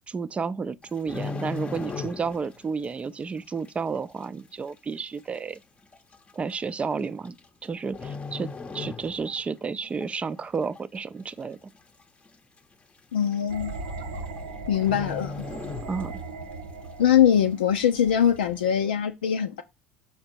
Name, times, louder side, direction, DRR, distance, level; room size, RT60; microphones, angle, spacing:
voice 1, 0.1-5.6 6.3-7.4 7.6-11.6 15.9-16.1, right 5 dB, 25° right, 0.5 m, -31 dB
sound 1, 0.8-2.6 2.8-3.1 3.7-3.8 4.7-4.8 5.0-5.1 5.9-6.1 7.2-7.6 7.9-9.5 9.8-10.1 10.5-11.1 11.4-11.5 11.7-11.8 12.3-12.4 13.3-13.4 13.7-14.0 14.3-14.4 14.8-16.4 16.8-16.9, left 4 dB, 20° left, 0.8 m, -36 dB
voice 2, 13.1-13.8 14.7-15.5 17.0-19.6, left 9 dB, 80° left, 0.4 m, -22 dB
sound 2, 13.5-18.9, right 3 dB, 80° right, 0.8 m, -39 dB
5.7 x 4.3 x 4.4 m
figure-of-eight pair, 65°, 5 cm